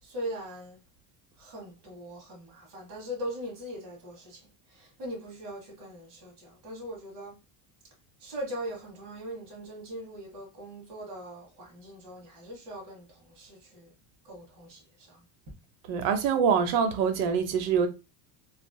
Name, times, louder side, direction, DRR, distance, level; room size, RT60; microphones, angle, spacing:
voice 1, 0.0-0.8 1.4-7.4 8.2-13.9 14.2-15.5, equal, 40° right, 1.3 m, -41 dB
voice 2, 15.9-17.9, right 6 dB, 80° right, 0.8 m, -25 dB
3.3 x 2.4 x 2.2 m
cardioid pair, 170°, 47 cm